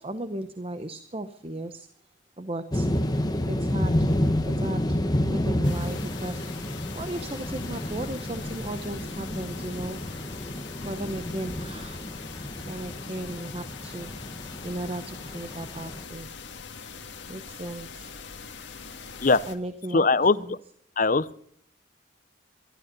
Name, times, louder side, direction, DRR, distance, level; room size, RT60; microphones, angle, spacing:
voice 1, 0.0-1.9 2.4-2.9 3.5-4.1 4.5-5.0 5.3-10.0 10.8-12.0 12.6-14.1 14.6-16.3 17.3-18.1 19.5-20.1 20.4-20.6, right 1 dB, 30° right, 10 dB, 0.8 m, -36 dB
sound 1, 2.7-16.0, left 1 dB, 20° left, 1.1 m, -30 dB
sound 2, 5.6-19.6, left 5 dB, 70° left, 1.7 m, -42 dB
voice 2, 19.9-20.6 21.0-21.4, left 3 dB, 40° left, 15 dB, 0.6 m, -21 dB
21.5 x 12.5 x 5.3 m, 0.65 s
head